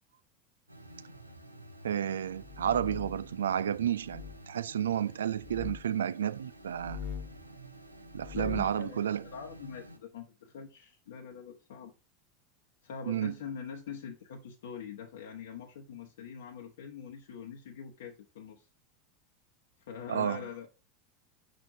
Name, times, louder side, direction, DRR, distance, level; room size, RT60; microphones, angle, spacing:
sound 1, 0.7-10.0, right 2 dB, 90° right, 0.7 m, -52 dB
voice 1, 1.8-7.0 8.1-9.2 13.1-13.3 20.1-20.4, right 9 dB, 75° right, 0.3 m, -31 dB
sound 2, 2.3-3.3 4.0-4.4 5.4-5.8 6.7-7.4 8.1-8.8, left 6 dB, 45° left, 1.2 m, -42 dB
voice 2, 8.3-11.9 12.8-18.7 19.8-20.7, left 7 dB, 65° left, 0.9 m, -44 dB
6.7 x 6.3 x 2.6 m
figure-of-eight pair, 80°, 0 cm